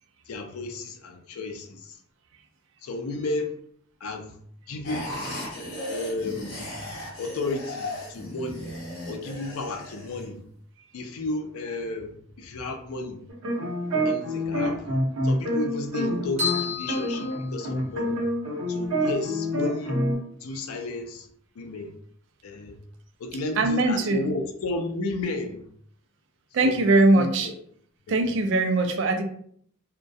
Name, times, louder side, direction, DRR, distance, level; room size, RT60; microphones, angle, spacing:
voice 1, 0.3-1.9 2.8-3.6 4.0-4.3 4.7-5.1 5.9-6.7 7.2-8.7 9.1-10.4 10.9-13.2 14.0-15.0 15.2-18.2 18.7-20.0 20.4-21.3 21.6-21.9 22.4-22.8 23.2-25.6 26.6-26.8 27.1-27.5 28.1-28.3, left 2 dB, 85° left, 5 dB, 0.4 m, -33 dB
sound 1, 4.8-10.2, left 1 dB, 50° left, 0.8 m, -36 dB
sound 2, 13.3-16.6 16.9-20.2, equal, 85° right, 0.8 m, -27 dB
sound 3, 16.4-18.2, left 7 dB, 30° right, 1.0 m, -32 dB
voice 2, 23.6-24.3 26.5-27.5 28.1-29.2, right 2 dB, 55° right, 6 dB, 0.3 m, -21 dB
2.2 x 2.1 x 2.6 m, 0.62 s
head